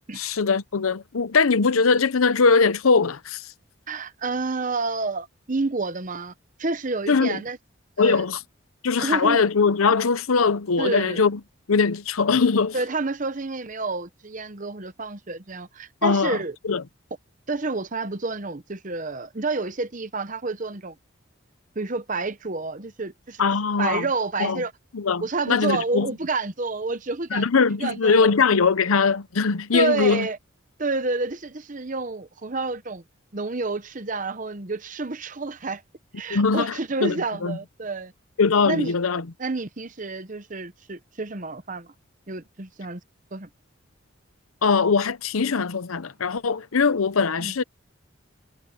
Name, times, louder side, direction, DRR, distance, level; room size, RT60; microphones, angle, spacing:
voice 1, 0.1-3.5 7.1-7.4 8.0-8.4 8.8-11.4 11.7-12.8 16.0-16.4 16.6-16.8 23.4-24.1 24.4-24.6 24.9-26.1 27.3-30.3 36.3-37.6 38.4-39.3 44.6-47.6, left 5 dB, 90° left, 0.8 m, -21 dB
voice 2, 3.9-6.3 6.6-7.6 8.0-8.2 8.9-9.4 10.8-11.2 12.7-16.5 17.5-20.9 21.8-23.4 23.8-24.7 25.2-27.5 27.8-28.3 29.7-30.4 30.8-33.0 33.3-35.8 36.2-38.1 38.6-38.9 39.4-41.9 42.3-43.0 43.3-43.5 47.4-47.5, right 3 dB, 40° right, 1.0 m, -29 dB
head